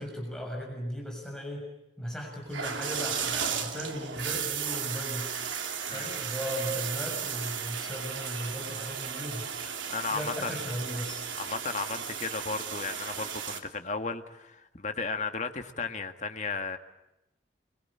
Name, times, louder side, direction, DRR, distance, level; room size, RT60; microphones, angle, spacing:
voice 1, 0.0-1.7 2.0-5.3 5.9-9.7 10.1-11.3, equal, 5° left, 0 dB, 6.8 m, -37 dB
sound 1, 2.5-13.6, right 7 dB, 85° right, 3.2 m, -35 dB
voice 2, 9.9-10.6 11.4-16.8, left 4 dB, 40° left, 7 dB, 1.9 m, -34 dB
28.0 x 24.0 x 8.7 m, 0.91 s
head